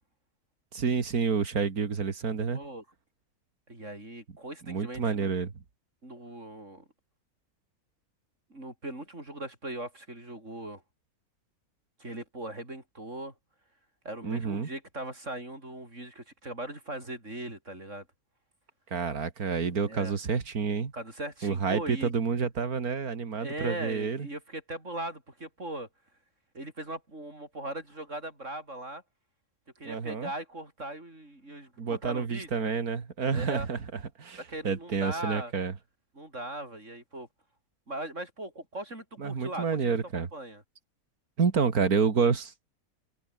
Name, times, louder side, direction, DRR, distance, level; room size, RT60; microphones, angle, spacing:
voice 1, 0.7-2.6 4.7-5.5 14.2-14.7 18.9-20.9 21.4-24.3 29.8-30.3 31.8-33.8 34.2-35.7 39.2-40.3 41.4-42.5, right 5 dB, 80° right, 2.6 m, -29 dB
voice 2, 2.5-2.8 3.7-5.3 6.0-6.9 8.5-10.8 12.0-13.3 14.1-18.1 19.9-20.1 20.9-22.1 23.4-25.9 26.5-29.0 29.8-32.7 33.3-33.7 34.5-35.5 36.2-37.3 37.9-40.6, right 1 dB, 55° right, 7.2 m, -39 dB
omnidirectional pair, 1.5 m